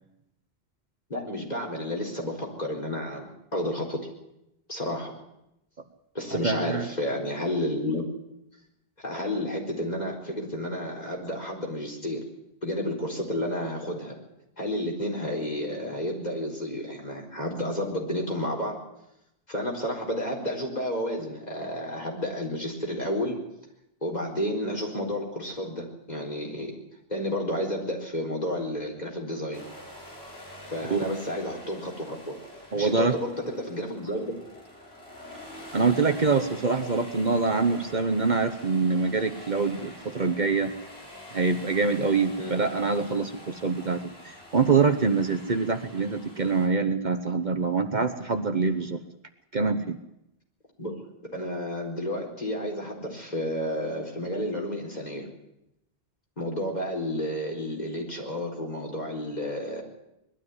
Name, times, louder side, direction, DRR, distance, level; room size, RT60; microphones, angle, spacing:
voice 1, 1.1-4.1 4.7-5.1 6.1-8.1 9.0-12.2 12.6-14.2 14.6-18.7 19.5-23.4 24.0-26.7 27.1-29.6 30.7-32.4 32.7-34.4 42.4-42.6 50.8-50.9 51.3-55.3 56.4-59.8, left 1 dB, 40° left, 0 dB, 4.7 m, -31 dB
voice 2, 6.3-6.9 30.9-31.0 32.7-33.1 35.7-40.7 41.3-49.0 49.5-50.0, right 4 dB, 45° right, 8 dB, 1.2 m, -25 dB
sound 1, 29.5-46.7, left 1 dB, 80° left, 5.1 m, -46 dB
21.0 x 13.0 x 9.7 m, 0.85 s
omnidirectional pair, 1.0 m